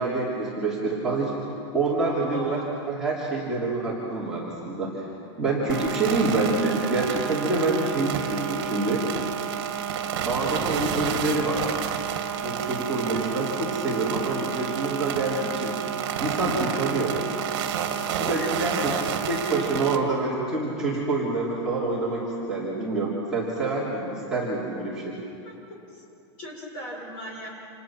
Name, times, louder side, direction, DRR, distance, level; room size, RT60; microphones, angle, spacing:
voice 1, 0.0-1.3 1.7-2.6 2.9-5.0 5.4-9.0 10.2-11.6 12.4-15.8 16.2-17.4 17.9-18.9 19.3-22.2 22.5-25.0, right 3 dB, 5° right, -9 dB, 3.2 m, -27 dB
voice 2, 2.3-2.7 13.0-13.3 18.2-19.1 25.4-26.0 26.4-27.5, left 1 dB, 30° left, -2 dB, 6.7 m, -39 dB
sound 1, 5.7-20.0, right 8 dB, 50° right, 2.5 m, -30 dB
29.5 x 28.0 x 6.1 m, 2.7 s
supercardioid pair, 175°, 15 cm